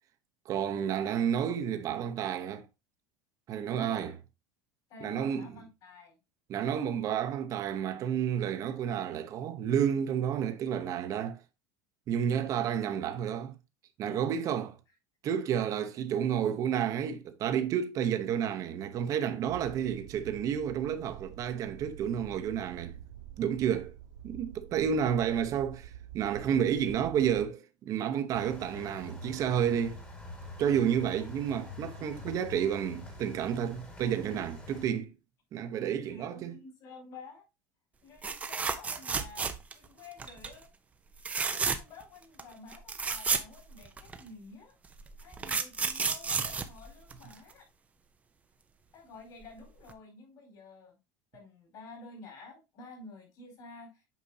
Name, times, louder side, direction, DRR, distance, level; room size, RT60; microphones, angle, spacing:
voice 1, 0.5-2.7 3.5-4.1 5.0-5.6 6.5-11.4 12.1-13.5 14.0-14.8 15.2-22.9 23.4-23.9 24.2-30.0 30.6-35.1 35.5-36.5, right 8 dB, 35° right, 0.9 m, -30 dB
voice 2, 3.7-4.1 4.9-6.2 24.7-24.9 36.1-37.5 38.0-40.7 41.4-44.8 45.2-47.7 48.9-51.0 51.3-54.1, left 3 dB, 45° left, 4.5 m, -50 dB
sound 1, 19.5-27.5, right 10 dB, 85° right, 0.6 m, -48 dB
sound 2, 28.3-34.9, left 3 dB, 15° left, 1.8 m, -46 dB
sound 3, 38.2-39.9 40.2-40.5 41.2-42.0 42.4-42.5 42.7-44.2 45.0-47.5 49.4-49.6 49.9-50.0, right 5 dB, 15° right, 0.6 m, -32 dB
8.3 x 5.3 x 2.8 m
cardioid pair, 150°, 9 cm